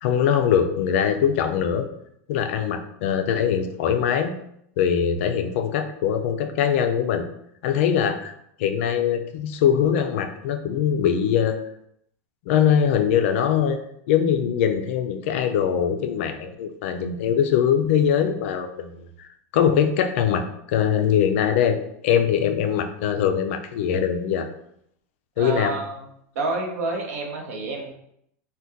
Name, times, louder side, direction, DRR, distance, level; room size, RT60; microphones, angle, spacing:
voice 1, 0.0-1.9 2.3-4.3 4.8-7.2 7.6-8.3 8.6-11.6 12.5-13.8 14.1-18.9 19.2-19.3 19.5-21.8 22.0-24.5 25.4-25.7, left 8 dB, 50° left, 7 dB, 0.3 m, -22 dB
voice 2, 25.4-26.1 26.3-27.9, right 3 dB, 65° right, 1 dB, 0.7 m, -29 dB
2.7 x 2.2 x 3.5 m, 0.72 s
supercardioid pair, 175°, 9 cm